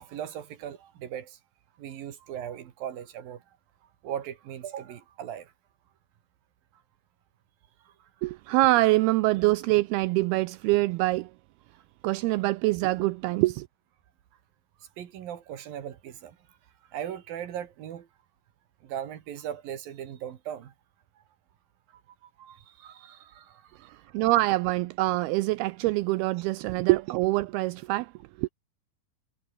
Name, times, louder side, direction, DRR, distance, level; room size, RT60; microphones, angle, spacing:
voice 1, 0.0-1.4 1.8-3.4 4.0-5.5 7.9-8.0 15.0-16.4 16.9-18.1 18.8-20.7 22.2-23.9, right 10 dB, 65° right, 3.5 m, -38 dB
voice 2, 8.2-11.3 12.0-13.7 23.8-28.1 28.4-28.5, right 20 dB, 80° right, 2.5 m, -25 dB
omnidirectional pair, 4.7 m